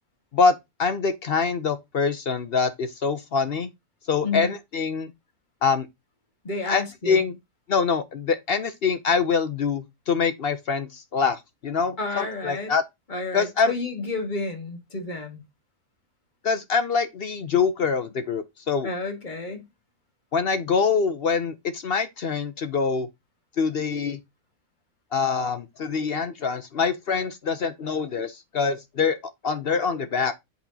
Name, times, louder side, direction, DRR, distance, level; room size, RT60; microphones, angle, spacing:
voice 1, 0.3-3.7 4.1-5.1 5.6-5.9 6.7-7.4 7.7-12.8 13.3-13.7 16.4-18.9 20.3-23.1 23.6-24.2 25.1-29.2 29.4-30.3, left 5 dB, 55° left, 0.7 m, -24 dB
voice 2, 6.4-7.3 12.0-12.7 13.1-15.4 18.8-19.7, left 3 dB, 35° left, 1.8 m, -31 dB
8.3 x 4.3 x 2.8 m
omnidirectional pair, 1.5 m